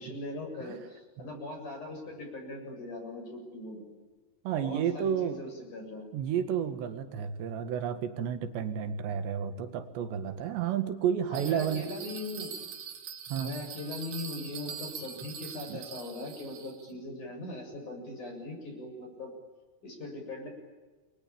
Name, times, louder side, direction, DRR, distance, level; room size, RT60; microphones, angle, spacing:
voice 1, 0.0-3.8 4.6-6.1 11.3-12.5 13.4-19.3 19.8-20.5, left 2 dB, 45° left, 3 dB, 8.9 m, -40 dB
voice 2, 4.5-5.4 6.1-11.9 13.3-13.6 15.7-15.8, right 8 dB, 85° right, 8 dB, 4.1 m, -31 dB
Bell, 11.3-16.9, right 7 dB, 65° right, 3.9 m, -43 dB
29.0 x 23.0 x 8.8 m, 1.3 s
omnidirectional pair, 4.9 m